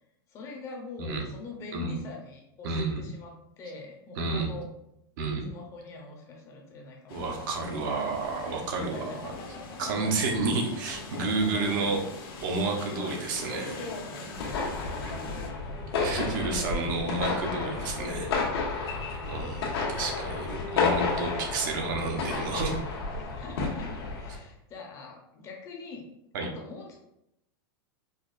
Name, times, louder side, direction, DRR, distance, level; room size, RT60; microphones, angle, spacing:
voice 1, 0.3-4.7 5.5-7.3 7.6-7.7 8.3-10.5 11.3-11.8 13.0-13.2 13.4-15.6 18.0-19.2 23.2-26.1 26.4-27.0, left 3 dB, 25° left, 1 dB, 0.6 m, -44 dB
voice 2, 2.6-3.0 4.2-4.5 5.2-5.5 7.1-9.3 9.8-12.0 12.4-13.7 16.0-18.3 19.2-22.8 26.3-26.5, right 3 dB, 55° right, 2 dB, 0.8 m, -30 dB
sound 1, 7.1-15.5, left 3 dB, 65° left, 0.9 m, -42 dB
sound 2, 14.3-24.4, left 4 dB, 90° left, 1.0 m, -31 dB
4.8 x 2.3 x 2.4 m, 0.82 s
supercardioid pair, 155°, 13 cm